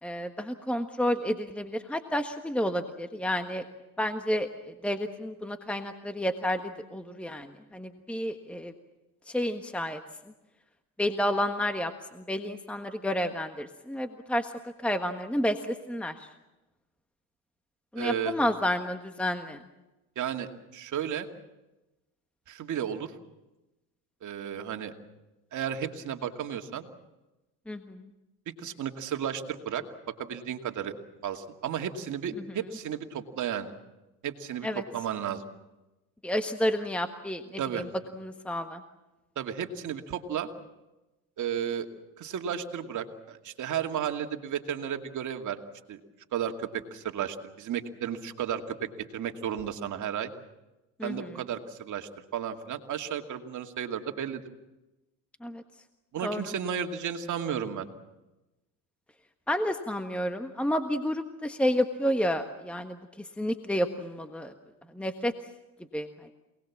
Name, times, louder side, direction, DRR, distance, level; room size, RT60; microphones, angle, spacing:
voice 1, 0.0-3.6 4.0-8.7 9.3-10.0 11.0-14.5 14.8-16.3 17.9-19.6 27.7-28.0 32.4-32.5 34.6-34.8 36.2-37.9 38.2-38.8 51.0-51.4 55.4-55.6 56.2-56.4 59.5-64.5 64.9-65.3 65.9-66.3, equal, 5° left, 7 dB, 1.4 m, -30 dB
voice 2, 18.0-18.3 20.2-21.3 22.5-23.1 24.2-24.9 25.5-26.9 28.6-29.8 30.2-30.9 31.2-33.7 34.2-35.4 37.6-37.9 39.4-40.5 41.4-41.9 42.2-45.6 45.9-46.0 46.3-48.7 49.1-50.3 51.0-54.4 56.1-57.9, right 8 dB, 45° right, 5 dB, 2.5 m, -33 dB
27.5 x 20.0 x 7.4 m, 1.0 s
supercardioid pair, 95°, 41 cm